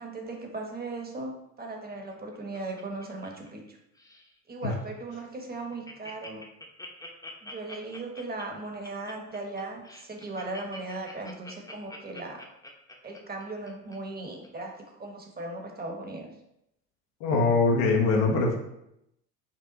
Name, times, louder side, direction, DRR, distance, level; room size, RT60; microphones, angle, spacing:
voice 1, 0.0-3.8 4.5-6.5 7.4-12.5 13.0-16.3, right 2 dB, 25° right, 2 dB, 1.1 m, -38 dB
Laughter, 1.9-3.7 4.0-4.3 4.8-4.9 5.2-5.3 5.5-14.0 14.4-14.5, left 2 dB, 10° left, 0.8 m, -45 dB
voice 2, 17.2-18.6, left 3 dB, 85° left, -1 dB, 1.1 m, -23 dB
5.6 x 2.3 x 3.9 m, 0.82 s
hypercardioid pair, 70°, 39 cm